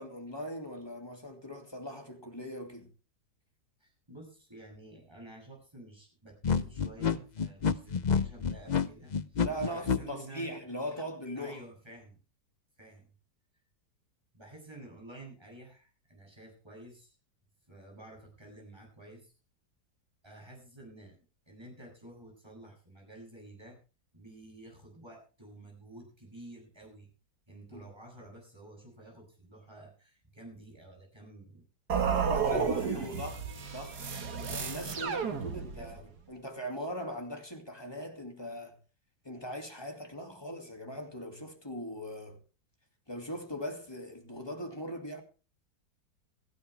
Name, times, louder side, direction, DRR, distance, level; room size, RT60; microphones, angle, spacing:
voice 1, 0.0-2.9 9.4-11.6 27.7-27.8 32.1-33.4 33.7-34.0 34.5-38.8 39.2-42.4 43.1-45.2, equal, 15° left, 2.4 m, -40 dB
voice 2, 3.8-10.5 11.3-12.2 12.8-13.1 14.3-17.2 17.7-19.3 20.2-21.2 21.5-23.8 24.1-27.1 27.5-31.6 31.9-33.3 35.0-36.1, right 1 dB, 15° right, 8.1 m, -51 dB
sound 1, 6.4-10.0, left 6 dB, 55° left, 0.4 m, -28 dB
sound 2, 31.9-36.0, right 6 dB, 65° right, 2.2 m, -32 dB
17.5 x 15.0 x 3.4 m
omnidirectional pair, 1.8 m